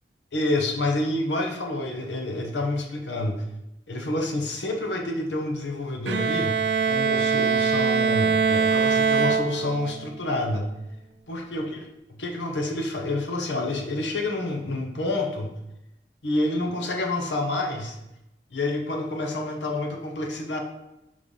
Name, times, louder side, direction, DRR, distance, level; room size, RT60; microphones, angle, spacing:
voice 1, 0.3-3.4 3.9-10.7 11.3-11.8 12.2-15.5 16.2-18.0 18.5-20.6, left 2 dB, 85° left, 2 dB, 1.0 m, -28 dB
Bowed string instrument, 6.1-10.1, right 5 dB, 80° right, 0.5 m, -23 dB
5.2 x 3.3 x 5.5 m, 0.90 s
head